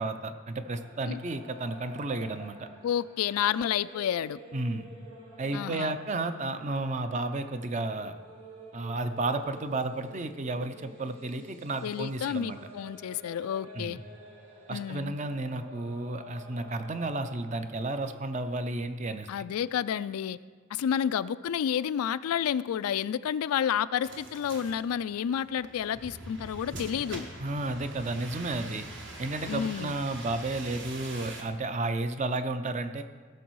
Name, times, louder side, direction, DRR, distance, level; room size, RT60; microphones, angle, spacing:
voice 1, 0.0-2.7 4.5-4.9 5.4-8.2 8.7-12.6 13.7-14.0 14.7-19.3 27.4-28.9 29.2-33.0, right 2 dB, 35° right, 9 dB, 0.5 m, -32 dB
sound 1, 0.6-18.2, right 1 dB, 85° right, 2.0 m, -50 dB
voice 2, 2.8-4.4 5.5-5.9 11.8-14.0 14.7-15.2 19.3-20.4 20.7-27.3 29.5-29.9, left 9 dB, 85° left, 16 dB, 0.3 m, -30 dB
sound 2, 24.0-31.4, right 2 dB, 55° right, 1.3 m, -43 dB
16.5 x 6.2 x 4.7 m, 1.5 s
head